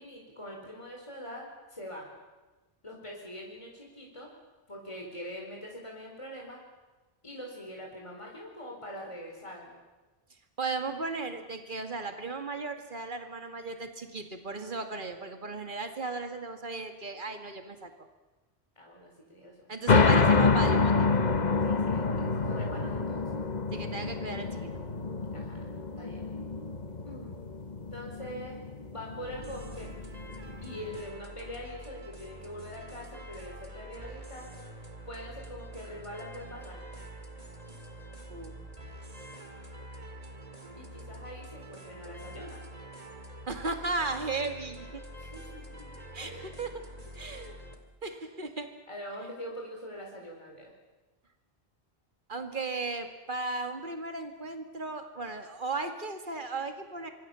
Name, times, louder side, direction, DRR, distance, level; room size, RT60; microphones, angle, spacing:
voice 1, 0.0-2.1 2.8-4.3 4.7-6.6 7.2-9.8 18.8-20.1 21.6-23.4 25.3-25.6 26.0-26.2 27.0-27.4 27.9-28.6 28.9-29.9 30.6-34.5 35.0-37.0 40.8-42.6 45.2-45.9 46.2-46.6 47.3-47.6 48.9-50.7, equal, 30° left, -1 dB, 4.5 m, -43 dB
voice 2, 10.6-17.9 19.7-21.2 23.7-24.7 38.3-38.6 43.5-45.0 46.1-46.9 47.1-47.5 48.0-48.7 52.3-57.1, right 3 dB, 55° right, 6 dB, 2.3 m, -36 dB
sound 1, 19.9-31.0, left 4 dB, 45° left, 1.2 m, -27 dB
sound 2, 29.2-47.8, right 1 dB, 40° right, 2.5 m, -46 dB
25.5 x 24.5 x 7.0 m, 1.2 s
omnidirectional pair, 1.0 m